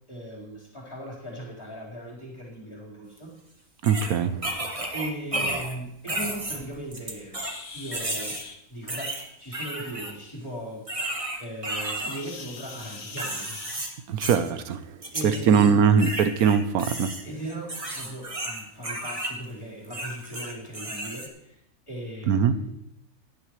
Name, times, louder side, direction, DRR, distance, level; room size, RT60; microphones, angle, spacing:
voice 1, 0.1-3.3 4.9-7.4 7.7-8.4 8.7-13.6 15.1-15.8 17.2-21.6 21.9-22.7, right 1 dB, 20° left, -5 dB, 4.3 m, -38 dB
sound 1, 3.2-3.3 3.8-5.8 6.1-7.6 7.9-8.4 8.9-10.1 10.9-12.2 12.7-13.9 14.2-14.5 15.0-15.7 16.0-19.3 19.8-21.3, right 1 dB, 25° right, 1.4 m, -33 dB
voice 2, 3.8-4.6 14.1-17.1 22.3-22.5, right 6 dB, 90° right, 10 dB, 1.2 m, -22 dB
sound 2, 7.3-8.6 12.1-14.3 15.6-15.8 16.3-16.4 17.0-17.1 17.9-18.0 18.5-18.7, left 4 dB, 80° left, 1.8 m, -42 dB
17.0 x 11.5 x 3.2 m, 0.82 s
omnidirectional pair, 1.5 m